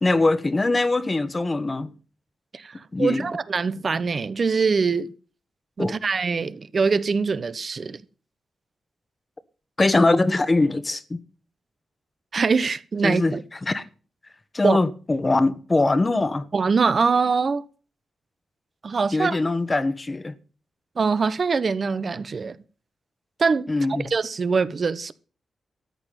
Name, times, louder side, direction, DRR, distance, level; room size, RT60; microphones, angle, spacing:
voice 1, 0.0-1.9 2.9-3.3 5.8-5.9 9.8-11.2 13.0-13.3 13.6-13.8 14.5-16.5 19.1-20.3 23.7-24.0, left 2 dB, 30° left, 1.3 m, -22 dB
voice 2, 2.5-5.1 5.8-8.0 12.3-13.4 14.6-14.8 16.5-17.6 18.8-19.4 21.0-22.6 23.4-23.7 24.0-25.1, right 5 dB, 50° right, 0.9 m, -23 dB
13.5 x 6.1 x 9.2 m
cardioid pair, 65°, 0 cm